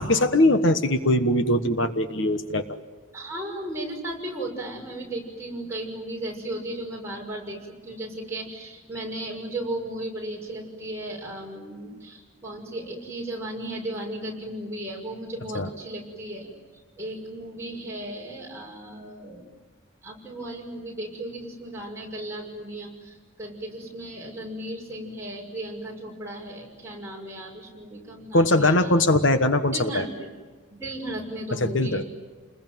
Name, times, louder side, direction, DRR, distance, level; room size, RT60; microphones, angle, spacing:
voice 1, 0.0-2.6 15.5-15.7 28.3-30.0 31.5-32.0, left 1 dB, 55° left, 10 dB, 1.3 m, -21 dB
voice 2, 3.1-16.5 17.0-19.4 20.0-29.1 29.7-30.1 30.7-32.1, right 1 dB, 10° right, -2 dB, 6.2 m, -35 dB
30.0 x 21.0 x 9.3 m, 1.5 s
head